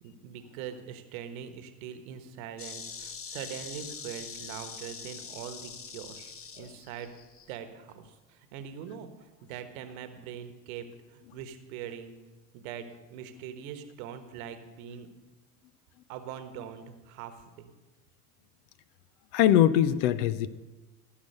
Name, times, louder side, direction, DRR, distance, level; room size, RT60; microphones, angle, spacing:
voice 1, 0.0-7.2 7.5-12.2 12.5-12.8 13.1-15.1 16.1-17.7, right 8 dB, 65° right, 9 dB, 1.3 m, -42 dB
Insect, 2.6-7.6, left 6 dB, 30° left, 1.0 m, -43 dB
voice 2, 19.3-20.5, left 11 dB, 60° left, 15 dB, 0.7 m, -22 dB
15.0 x 5.8 x 6.6 m, 1.2 s
hypercardioid pair, 70°, 45 cm